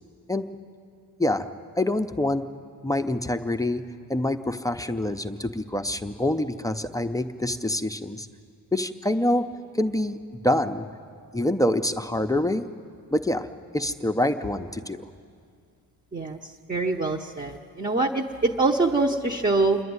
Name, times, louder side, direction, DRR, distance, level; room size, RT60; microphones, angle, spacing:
voice 1, 1.8-2.4 2.8-3.8 4.1-8.3 8.7-9.4 9.7-10.9 11.3-12.6 13.1-13.5 13.7-15.0, left 1 dB, 10° left, 7 dB, 0.5 m, -26 dB
voice 2, 16.7-19.8, right 3 dB, 20° right, 1 dB, 0.8 m, -24 dB
27.0 x 11.0 x 9.5 m, 2.2 s
wide cardioid pair, 145°, 39 cm